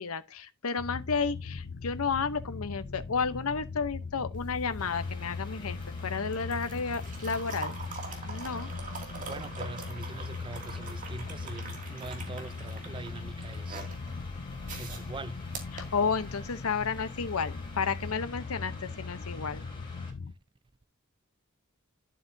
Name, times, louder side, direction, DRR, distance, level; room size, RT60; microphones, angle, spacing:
voice 1, 0.0-5.8 6.0-7.8 8.3-8.7 15.7-19.7, left 5 dB, 85° left, 0.8 m, -32 dB
sound 1, 0.8-20.3, left 4 dB, 50° left, 0.4 m, -40 dB
sound 2, 4.3-16.6 17.9-18.1, right 4 dB, 40° right, 2.4 m, -44 dB
Mechanical fan, 4.8-20.1, left 2 dB, 25° left, 3.9 m, -49 dB
voice 2, 9.2-13.9 14.7-15.5, right 3 dB, 25° right, 0.4 m, -43 dB
11.0 x 7.7 x 2.7 m
head